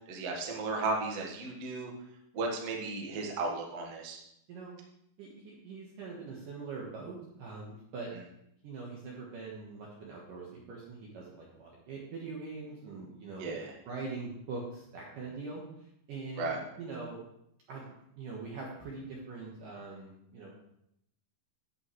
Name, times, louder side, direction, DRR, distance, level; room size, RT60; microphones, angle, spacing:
voice 1, 0.1-1.9 2.3-4.2 13.4-13.7 16.4-16.6, right 3 dB, 90° right, -1 dB, 1.3 m, -34 dB
voice 2, 5.2-8.1 8.6-13.5 13.9-15.6 16.1-17.2 17.7-20.5, right 4 dB, 70° right, -3 dB, 2.1 m, -43 dB
11.0 x 8.5 x 3.2 m, 0.76 s
omnidirectional pair, 5.6 m